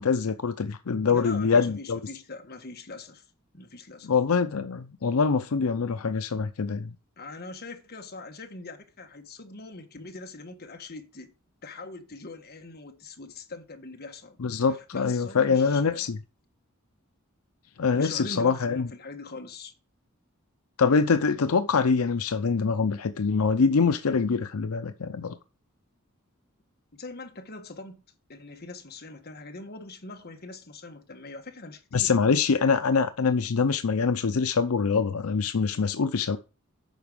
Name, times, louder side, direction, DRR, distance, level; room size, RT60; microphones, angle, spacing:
voice 1, 0.0-2.0 4.0-6.9 14.4-16.2 17.8-18.9 20.8-25.4 31.9-36.4, left 5 dB, 85° left, 0.6 m, -24 dB
voice 2, 1.1-3.2 3.5-4.1 7.2-11.3 11.6-16.0 17.9-19.7 26.9-28.0 28.3-32.2, left 3 dB, 45° left, 1.5 m, -42 dB
9.2 x 6.1 x 5.1 m
head